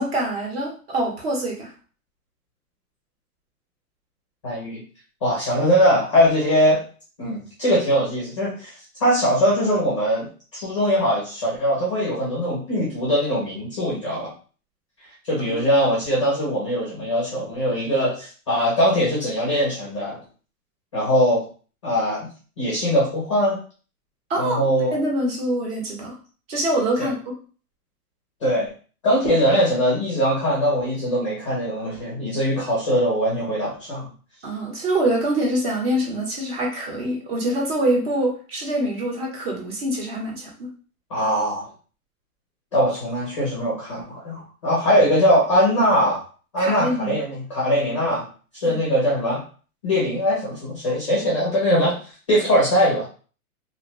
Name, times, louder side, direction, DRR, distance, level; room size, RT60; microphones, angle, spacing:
voice 1, 0.0-1.7 15.5-15.7 24.3-24.6 24.9-26.1 26.5-27.2 34.4-40.7 46.6-47.2 48.6-48.8, right 1 dB, 40° right, 0 dB, 0.9 m, -25 dB
voice 2, 4.4-4.8 5.2-6.8 7.2-10.3 10.5-14.3 15.2-20.2 20.9-21.4 21.8-22.3 22.6-23.6 24.4-25.0 27.0-27.1 28.4-28.7 29.0-34.1 41.1-41.7 42.7-46.2 46.5-48.3 48.5-49.4 49.8-52.0 52.3-53.1, equal, 20° left, -5 dB, 0.5 m, -21 dB
2.6 x 2.2 x 2.9 m, 0.39 s
hypercardioid pair, 165°, 45 cm